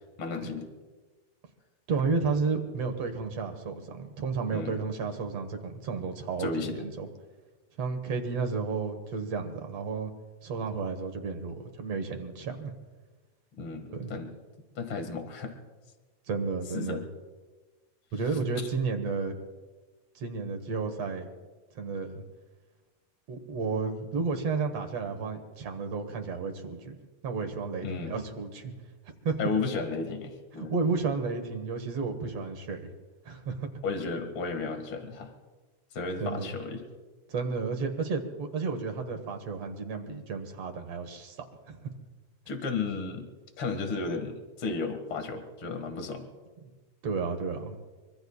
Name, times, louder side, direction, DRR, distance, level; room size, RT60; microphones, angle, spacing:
voice 1, 0.2-0.7 4.5-4.8 6.4-6.8 13.6-14.3 14.8-15.6 16.7-17.0 27.8-28.2 29.4-30.7 33.8-35.3 35.9-36.8 42.5-43.3 43.6-46.3, left 4 dB, 45° left, 6 dB, 2.5 m, -33 dB
voice 2, 1.9-7.1 7.8-10.1 10.4-12.7 13.9-14.1 16.3-17.0 18.1-19.4 20.2-21.3 21.8-22.2 23.3-28.7 29.2-29.4 30.6-32.9 33.3-33.7 36.2-36.5 37.3-41.4 41.7-41.9 46.6-46.7 47.0-47.8, right 4 dB, 60° right, 6 dB, 2.3 m, -32 dB
24.5 x 24.5 x 2.4 m, 1.3 s
omnidirectional pair, 3.5 m